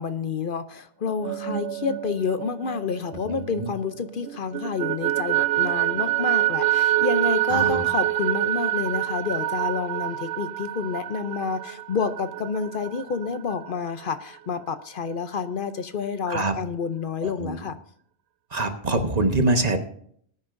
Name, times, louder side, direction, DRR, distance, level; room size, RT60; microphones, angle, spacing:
voice 1, 0.0-17.8, left 5 dB, 60° left, 10 dB, 0.8 m, -29 dB
sound 1, 1.1-3.9 4.3-13.7, right 15 dB, 85° right, 0.9 m, -26 dB
voice 2, 3.3-3.7 7.5-7.9 16.3-16.5 17.2-17.6 18.5-19.8, right 2 dB, 40° right, 6 dB, 1.2 m, -25 dB
19.5 x 9.5 x 2.6 m, 0.63 s
omnidirectional pair, 1.1 m